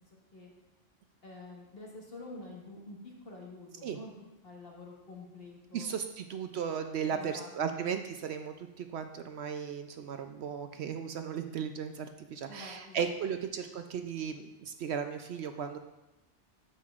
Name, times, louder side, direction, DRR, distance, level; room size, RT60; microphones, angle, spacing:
voice 1, 1.2-4.1 4.4-5.9 7.1-7.9 12.5-13.1, left 2 dB, 50° left, -3 dB, 1.7 m, -48 dB
voice 2, 5.7-15.8, right 7 dB, 65° right, 7 dB, 0.8 m, -36 dB
9.6 x 7.6 x 2.4 m, 0.96 s
omnidirectional pair, 1.3 m